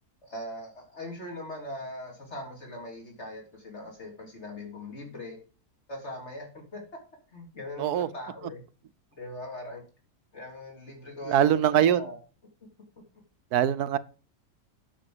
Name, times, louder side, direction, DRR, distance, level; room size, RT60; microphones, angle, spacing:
voice 1, 0.2-5.4 5.9-6.8 7.3-8.6 9.2-9.8 10.3-12.2, left 1 dB, 45° left, 3.8 m, -40 dB
voice 2, 11.3-12.0 13.5-14.0, right 10 dB, 85° right, 1.3 m, -22 dB
9.0 x 6.4 x 7.8 m
omnidirectional pair, 1.6 m